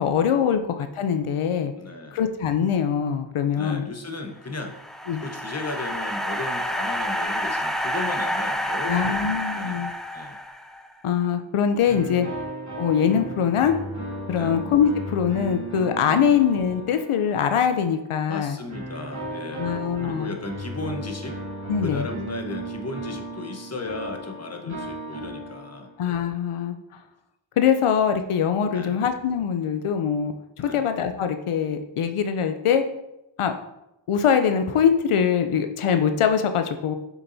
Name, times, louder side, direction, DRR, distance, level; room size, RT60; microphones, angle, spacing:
voice 1, 0.0-1.7 2.1-3.9 5.1-5.2 8.8-9.9 11.0-12.3 12.8-13.8 14.3-18.6 19.6-20.3 21.7-22.1 26.0-26.8 27.6-32.8 33.4-33.5 34.1-37.0, left 7 dB, 90° left, 7 dB, 0.6 m, -23 dB
voice 2, 1.7-2.2 3.5-4.7 5.2-9.2 9.6-9.9 10.1-10.4 14.3-14.6 16.2-16.3 18.3-21.4 21.8-25.9 28.7-29.0 30.6-30.9, left 2 dB, 30° left, 4 dB, 1.1 m, -35 dB
sound 1, 4.5-10.9, equal, ahead, 0.5 m, -29 dB
sound 2, 11.8-17.7 18.7-26.1, right 1 dB, 35° right, 2.6 m, -35 dB
7.2 x 6.9 x 2.7 m, 0.87 s
wide cardioid pair, 70°, 49 cm